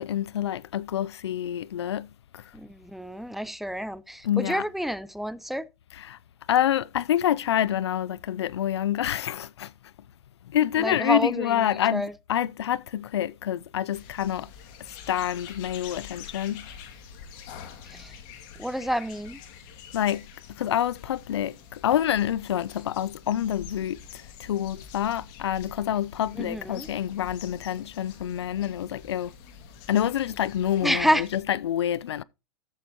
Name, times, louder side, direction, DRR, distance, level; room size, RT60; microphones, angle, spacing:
voice 1, 0.0-2.5 4.2-4.7 5.9-6.2 6.5-9.7 10.5-14.5 14.8-16.7 19.9-29.3 29.9-32.2, left 11 dB, 85° left, 0.5 m, -27 dB
voice 2, 2.5-5.7 10.8-11.6 11.9-12.1 17.9-18.1 18.6-19.4 26.4-26.9 30.8-31.2, equal, ahead, 0.6 m, -28 dB
sound 1, 13.9-31.4, left 7 dB, 55° left, 2.3 m, -46 dB
14.0 x 6.9 x 2.9 m
hypercardioid pair, 115°, 14 cm